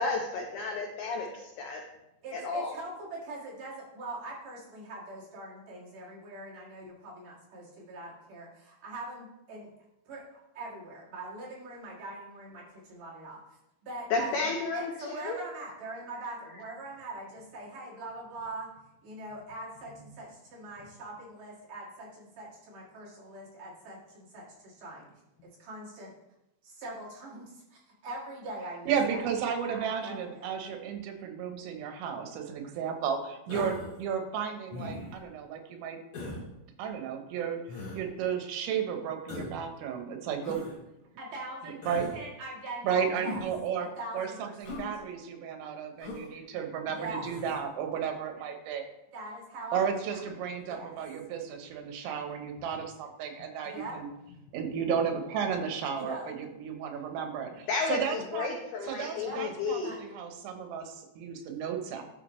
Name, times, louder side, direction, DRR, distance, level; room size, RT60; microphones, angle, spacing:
voice 1, 0.0-1.8 2.3-2.8 14.1-15.4 57.7-60.0, left 4 dB, 80° left, 1 dB, 2.3 m, -32 dB
voice 2, 2.2-9.7 10.1-13.4 13.8-18.7 19.0-25.1 25.4-26.1 26.6-29.2 29.6-30.5 33.5-33.7 34.8-34.9 41.2-43.4 44.0-44.8 46.9-47.3 49.1-50.2 50.6-51.0 53.6-54.0 55.9-56.3 59.1-59.4 59.8-60.0, right 2 dB, 55° right, -5 dB, 2.8 m, -42 dB
voice 3, 28.9-36.0 36.8-37.6 37.9-40.6 41.6-42.0 42.8-43.9 44.1-48.9 49.7-54.1 54.5-58.5 58.8-62.0, right 7 dB, 85° right, 4 dB, 3.6 m, -33 dB
Human voice, 33.5-34.0 34.7-35.2 36.1-36.4 37.7-38.0 39.3-39.6 40.4-40.7 41.8-42.2 43.2-43.6 44.6-44.9 46.0-46.3 47.2-47.6, left 2 dB, 45° left, 1.8 m, -39 dB
12.5 x 6.3 x 3.1 m, 0.89 s
omnidirectional pair, 5.8 m